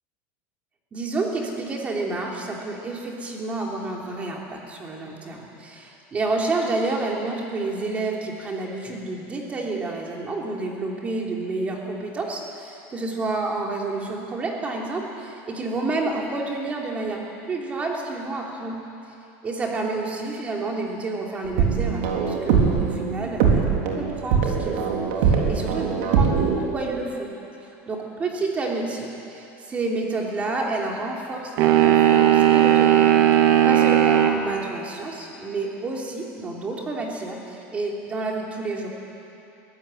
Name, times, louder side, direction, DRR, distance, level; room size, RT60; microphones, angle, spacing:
voice 1, 0.9-17.2 17.5-18.8 19.4-27.3 27.9-33.1 33.6-38.9, right 3 dB, 20° right, -1 dB, 3.1 m, -29 dB
sound 1, 21.4-26.6, right 6 dB, 75° right, 3.9 m, -22 dB
sound 2, 31.6-34.4, right 11 dB, 50° right, 1.5 m, -16 dB
23.0 x 16.0 x 9.1 m, 2.8 s
cardioid pair, 165°, 7 cm